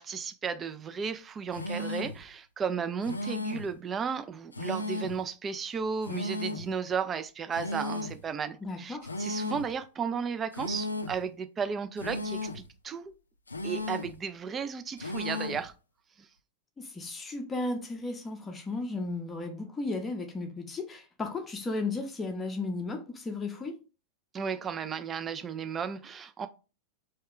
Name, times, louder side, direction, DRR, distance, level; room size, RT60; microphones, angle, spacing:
voice 1, 0.0-13.1 13.6-15.7 16.2-16.3 24.3-26.5, right 6 dB, 20° right, 0.3 m, -34 dB
sound 1, 1.5-2.2 3.0-3.7 4.5-5.2 6.0-6.7 7.5-8.2 9.0-9.7 10.5-11.2 12.0-12.7 13.5-14.2 15.0-15.7, left 2 dB, 80° left, 0.3 m, -35 dB
voice 2, 8.6-9.2 16.8-23.8, left 3 dB, 15° left, 0.6 m, -35 dB
3.1 x 2.2 x 3.5 m
figure-of-eight pair, 90°, 0 cm